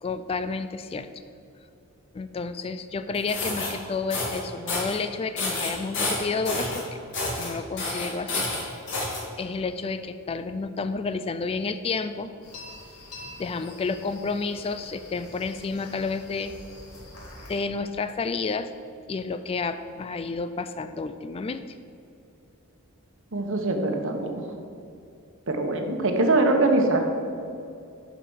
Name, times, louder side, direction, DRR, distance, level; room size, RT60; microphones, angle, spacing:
voice 1, 0.0-1.1 2.1-7.0 7.4-8.4 9.4-12.3 13.4-16.5 17.5-18.7 19.1-21.6, left 4 dB, 25° left, 11 dB, 0.3 m, -30 dB
sound 1, 3.1-3.7 4.1-4.4 4.7-5.0 5.4-6.8 7.1-7.5 7.8-9.2, left 2 dB, 55° left, 2.5 m, -29 dB
sound 2, 12.4-17.6, left 1 dB, 75° left, 2.4 m, -45 dB
voice 2, 23.3-24.5 25.5-27.0, right 2 dB, 60° right, 4 dB, 1.1 m, -23 dB
10.0 x 5.1 x 6.2 m, 2.6 s
head